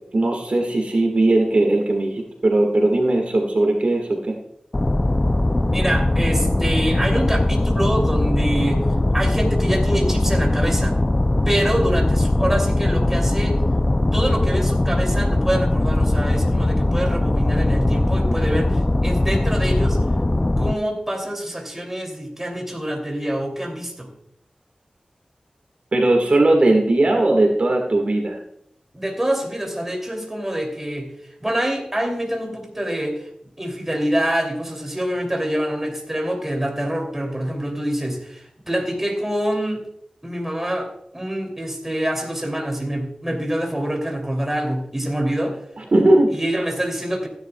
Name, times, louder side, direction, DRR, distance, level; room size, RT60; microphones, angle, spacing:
voice 1, 0.1-4.3 25.9-28.4 45.8-46.3, right 2 dB, 65° right, 2 dB, 1.7 m, -18 dB
sound 1, 4.7-20.7, left 1 dB, 25° left, 0.4 m, -20 dB
voice 2, 5.7-8.8 9.1-11.0 11.4-13.6 14.1-20.0 20.6-24.1 28.9-31.1 31.4-33.3 33.6-39.8 40.2-40.9 41.1-45.6 46.3-47.3, right 1 dB, 15° right, 1 dB, 2.8 m, -25 dB
15.5 x 10.5 x 2.3 m, 0.72 s
wide cardioid pair, 70°, 2 cm